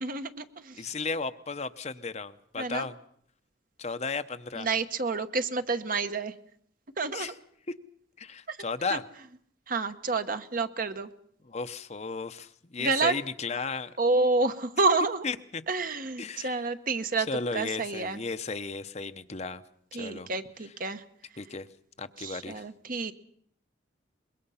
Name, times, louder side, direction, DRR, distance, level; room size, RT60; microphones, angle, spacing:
voice 1, 0.0-0.8 2.6-2.9 4.6-6.3 7.0-7.3 8.5-8.6 8.9-9.0 9.7-11.1 12.8-13.2 14.0-15.3 15.7-18.2 19.9-21.0 22.2-23.1, right 3 dB, 45° right, 9 dB, 1.1 m, -29 dB
voice 2, 0.7-3.0 3.8-4.7 7.1-7.3 8.2-9.0 11.4-13.9 15.2-15.6 16.2-16.6 17.3-19.6 19.9-20.3 21.4-21.7 22.0-22.6, left 4 dB, 35° left, 10 dB, 0.8 m, -34 dB
24.5 x 22.0 x 5.7 m, 0.65 s
head